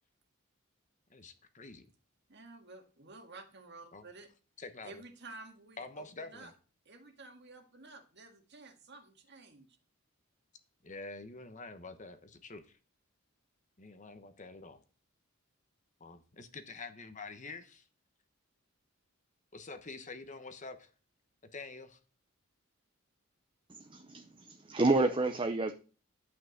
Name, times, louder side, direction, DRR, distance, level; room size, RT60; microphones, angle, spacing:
voice 1, 1.1-1.9 3.9-4.1 4.6-5.0 5.8-6.5 10.8-12.8 13.8-14.8 16.0-17.9 19.5-20.9 21.5-22.0, left 3 dB, 35° left, 1.1 m, -47 dB
voice 2, 2.3-4.3 4.8-6.5 6.9-9.7, right 3 dB, 50° right, 1.9 m, -52 dB
voice 3, 23.7-25.7, right 2 dB, 25° right, 0.6 m, -30 dB
11.0 x 5.8 x 6.4 m
head